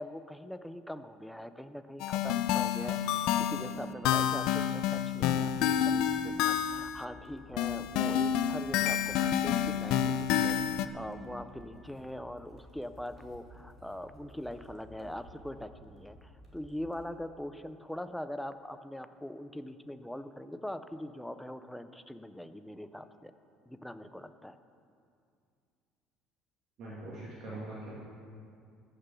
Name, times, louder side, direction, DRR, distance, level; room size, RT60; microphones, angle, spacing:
voice 1, 0.0-23.3 23.7-24.6, left 1 dB, ahead, 11 dB, 0.4 m, -42 dB
sound 1, 2.0-7.0 7.6-10.9, left 9 dB, 65° left, 0.5 m, -29 dB
sound 2, 5.8-17.0, equal, 25° right, 2.5 m, -55 dB
voice 2, 26.8-27.9, right 2 dB, 45° right, -7 dB, 2.5 m, -42 dB
15.0 x 6.7 x 6.9 m, 2.4 s
cardioid pair, 170°, 0 cm